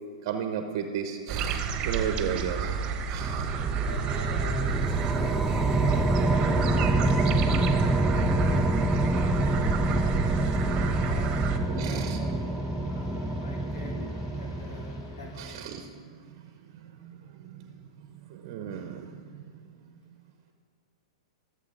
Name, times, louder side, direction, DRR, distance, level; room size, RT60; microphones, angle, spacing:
voice 1, 0.2-2.8 3.1-3.5 11.7-12.2 15.3-20.0, right 8 dB, 50° right, 6 dB, 1.0 m, -35 dB
sound 1, 1.3-11.6, right 6 dB, 35° right, 1.2 m, -30 dB
sound 2, 3.2-15.7, right 1 dB, 5° right, 0.6 m, -27 dB
voice 2, 3.7-7.6 8.0-9.5 10.0-12.4 12.8-15.6, equal, 80° left, -2 dB, 3.8 m, -45 dB
sound 3, 9.1-15.6, left 5 dB, 60° left, 2.0 m, -51 dB
23.5 x 8.1 x 4.0 m, 2.1 s
hypercardioid pair, 120°, 3 cm